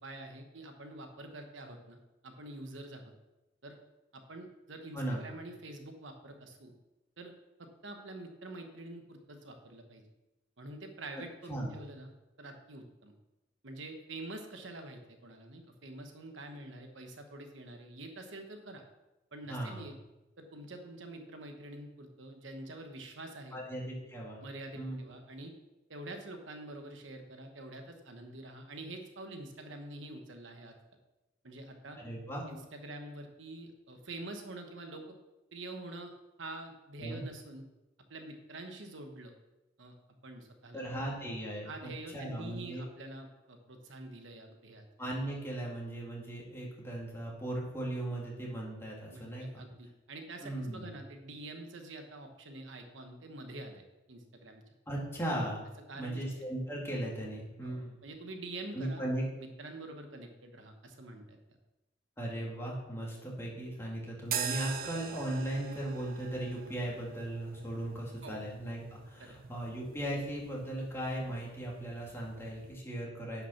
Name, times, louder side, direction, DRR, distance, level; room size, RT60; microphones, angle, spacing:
voice 1, 0.0-3.1 3.6-3.8 4.1-6.7 7.2-7.3 7.6-10.0 10.6-12.1 12.4-13.1 13.6-18.8 19.3-19.9 20.4-23.6 24.4-25.5 25.9-30.7 31.4-32.0 32.5-35.2 35.5-37.7 38.1-39.3 39.8-40.0 40.2-40.8 41.6-44.9 49.1-54.6 55.9-56.2 57.6-59.0 59.4-61.4 68.2-68.5 69.2-69.4, right 2 dB, 70° right, 4 dB, 1.2 m, -46 dB
voice 2, 19.5-19.9 23.5-24.4 24.7-25.0 31.9-32.4 37.0-37.3 40.7-42.8 45.0-49.6 50.4-50.9 54.9-55.7 55.9-57.9 58.7-59.2 62.2-73.5, right 1 dB, 15° left, -4 dB, 2.7 m, -37 dB
sound 1, 64.2-72.8, right 8 dB, 50° right, 0.7 m, -43 dB
10.0 x 5.8 x 5.9 m, 1.0 s
head